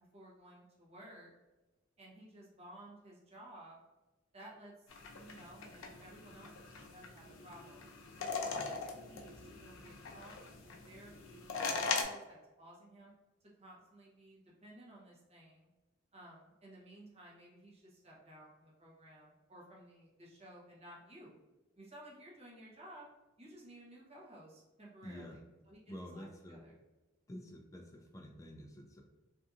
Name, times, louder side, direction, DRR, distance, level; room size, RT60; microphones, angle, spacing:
voice 1, 0.1-1.3 2.0-3.8 4.3-7.8 8.1-10.4 10.6-13.1 13.6-15.7 16.1-21.3 21.8-23.1 23.4-25.4 25.7-26.8, right 1 dB, 35° right, -5 dB, 0.8 m, -56 dB
sound 1, 4.9-12.0, left 4 dB, 85° left, 0.4 m, -41 dB
voice 2, 25.0-25.4 25.9-26.6 27.3-29.0, equal, 15° left, 3 dB, 0.3 m, -49 dB
2.7 x 2.4 x 2.4 m, 1.1 s
head